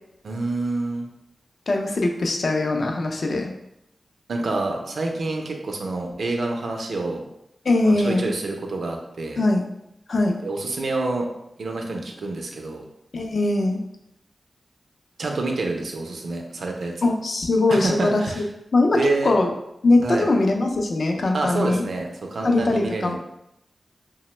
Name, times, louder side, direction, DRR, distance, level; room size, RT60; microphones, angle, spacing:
voice 1, 0.2-1.1 4.3-7.2 7.8-9.4 10.4-11.3 11.6-12.8 15.2-16.9 17.7-18.4 18.9-19.3 20.0-20.3 21.3-23.2, right 2 dB, 80° right, 2 dB, 0.4 m, -27 dB
voice 2, 1.7-3.5 7.6-8.3 9.4-9.7 10.1-10.4 13.1-13.8 17.0-19.5 19.8-21.8 22.4-23.2, left 2 dB, 65° left, 2 dB, 0.4 m, -21 dB
2.8 x 2.0 x 3.1 m, 0.82 s
wide cardioid pair, 95°, 0 cm